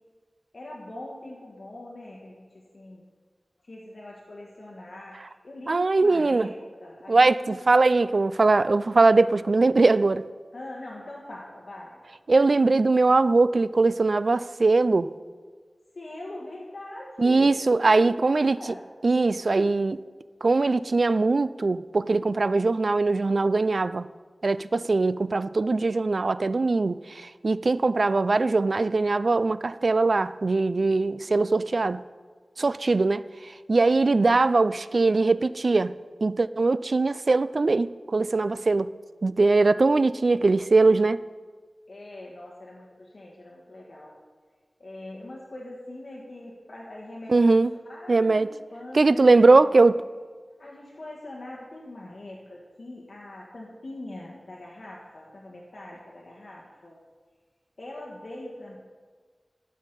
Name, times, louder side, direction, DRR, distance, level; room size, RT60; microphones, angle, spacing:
voice 1, 0.5-3.0 3.6-6.5 6.8-7.8 10.5-12.0 15.9-18.8 41.9-44.2 44.8-49.6 50.6-57.0 57.8-58.8, left 1 dB, 65° left, -3 dB, 1.5 m, -42 dB
voice 2, 5.7-6.5 7.1-10.2 12.3-15.1 17.2-18.6 19.0-20.0 20.4-24.0 24.4-32.0 32.6-33.2 33.7-35.9 36.2-38.9 39.2-41.2 47.3-47.7 48.1-48.5 48.9-50.0, right 3 dB, 60° right, 16 dB, 0.3 m, -21 dB
13.5 x 5.5 x 6.8 m, 1.5 s
wide cardioid pair, 80°, 0 cm